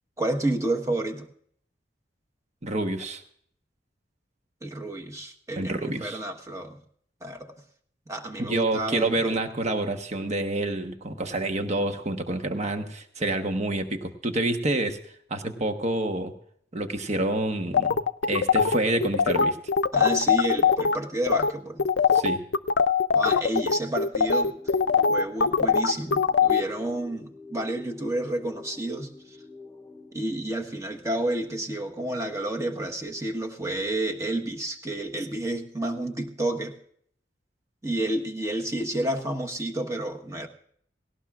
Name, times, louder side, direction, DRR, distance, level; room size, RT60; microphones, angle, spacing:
voice 1, 0.2-1.3 4.6-6.8 7.2-7.5 8.1-9.4 19.9-21.8 23.1-24.5 25.1-29.4 30.1-36.8 37.8-40.5, right 1 dB, 15° right, 4 dB, 1.3 m, -30 dB
voice 2, 2.6-3.2 5.6-6.2 8.4-15.0 15.3-16.3 16.7-19.6 22.1-22.4, right 2 dB, 40° right, 6 dB, 1.2 m, -28 dB
sound 1, 17.7-21.0 21.3-21.5 21.8-26.6, left 6 dB, 70° left, 0.6 m, -22 dB
sound 2, 24.2-30.2, left 3 dB, 10° left, 1.8 m, -46 dB
18.5 x 18.0 x 2.5 m, 0.62 s
head